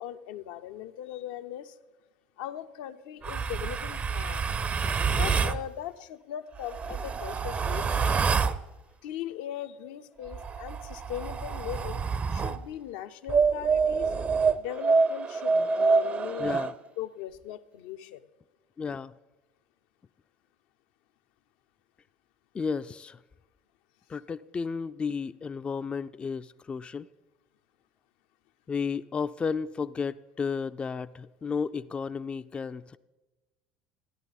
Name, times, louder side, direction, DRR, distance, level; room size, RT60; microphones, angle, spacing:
voice 1, 0.0-1.7 2.4-4.4 5.1-8.3 9.0-12.0 12.3-14.1 14.5-16.5 17.0-18.2, left 11 dB, 75° left, 0.6 m, -39 dB
sound 1, 3.2-5.6 6.6-8.6 10.3-12.6 13.3-16.7, right 5 dB, 35° right, 0.6 m, -27 dB
voice 2, 7.9-8.4 16.4-16.7 18.8-19.1 22.5-23.2 24.1-27.1 28.7-33.0, left 5 dB, 25° left, 0.3 m, -33 dB
14.0 x 11.0 x 4.0 m
hypercardioid pair, 75°, 4 cm